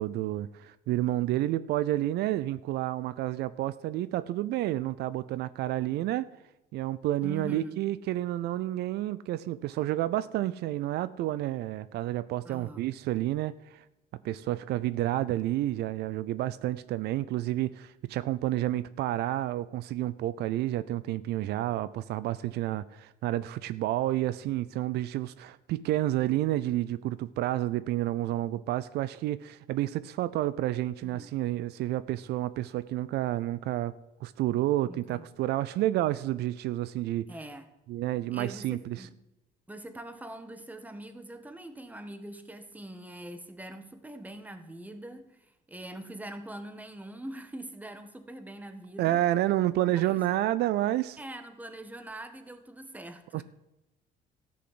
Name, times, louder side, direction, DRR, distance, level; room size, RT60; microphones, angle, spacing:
voice 1, 0.0-6.3 6.7-13.8 14.2-33.9 34.2-37.3 37.9-39.1 49.0-51.2 53.3-53.4, right 14 dB, 75° right, 0.5 m, -30 dB
voice 2, 7.2-7.8 12.4-12.9 31.0-31.3 34.9-35.2 37.3-37.7 38.3-39.2 39.7-49.2 50.0-50.3 51.2-53.4, right 1 dB, 10° right, 1.4 m, -43 dB
13.5 x 6.4 x 7.7 m
cardioid pair, 110°, 17 cm